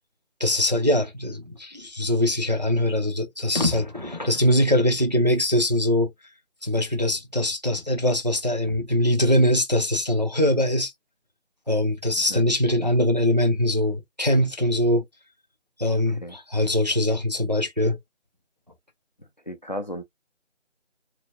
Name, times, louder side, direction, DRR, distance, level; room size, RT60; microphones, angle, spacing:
voice 1, 0.4-6.1 6.6-10.9 11.7-15.0 15.8-18.0, left 1 dB, 40° right, 0.4 m, -22 dB
voice 2, 19.5-20.0, equal, 40° left, 0.5 m, -34 dB
2.8 x 2.6 x 2.4 m
figure-of-eight pair, 170°, 36 cm